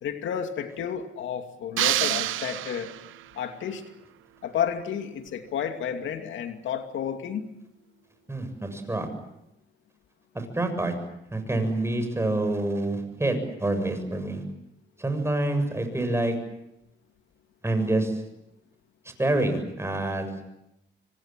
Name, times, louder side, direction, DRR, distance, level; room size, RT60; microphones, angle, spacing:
voice 1, 0.0-2.9 3.3-3.8 4.4-7.5, left 8 dB, 75° left, 6 dB, 2.6 m, -31 dB
sound 1, 1.8-3.3, right 14 dB, 80° right, 0.9 m, -27 dB
voice 2, 8.3-9.1 10.3-10.9 11.3-14.4 15.0-16.3 17.6-18.1 19.2-20.3, right 2 dB, 15° right, 7 dB, 7.3 m, -27 dB
27.0 x 24.5 x 7.5 m, 0.84 s
cardioid pair, 90°, 20 cm